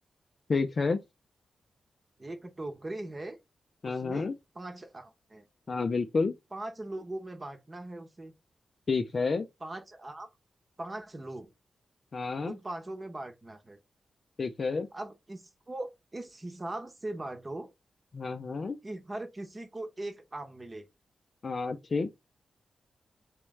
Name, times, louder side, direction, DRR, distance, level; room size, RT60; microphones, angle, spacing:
voice 1, 0.5-1.0 3.8-4.3 5.7-6.3 8.9-9.5 12.1-12.5 14.4-14.9 18.1-18.8 21.4-22.1, left 4 dB, 50° left, 0.4 m, -29 dB
voice 2, 2.2-3.4 3.8-4.3 4.5-5.5 6.5-8.3 9.6-10.3 10.8-11.5 12.4-13.8 14.9-17.7 18.8-20.9, right 2 dB, 30° right, 0.9 m, -40 dB
3.6 x 3.1 x 3.2 m
cardioid pair, 85°, 0 cm